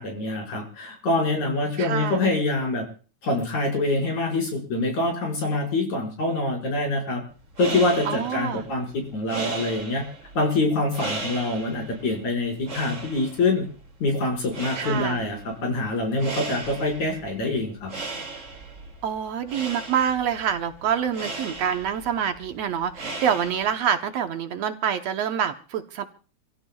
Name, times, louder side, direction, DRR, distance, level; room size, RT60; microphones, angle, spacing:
voice 1, 0.0-2.8 3.2-7.2 7.6-10.0 10.3-13.7 14.0-17.9, left 2 dB, 80° left, 0 dB, 6.6 m, -25 dB
voice 2, 1.8-2.2 8.1-8.7 14.8-15.2 19.0-26.1, right 8 dB, 70° right, 7 dB, 2.0 m, -26 dB
sound 1, 7.4-24.0, right 3 dB, 25° right, 2.6 m, -37 dB
27.5 x 16.0 x 2.3 m, 0.39 s
omnidirectional pair, 3.3 m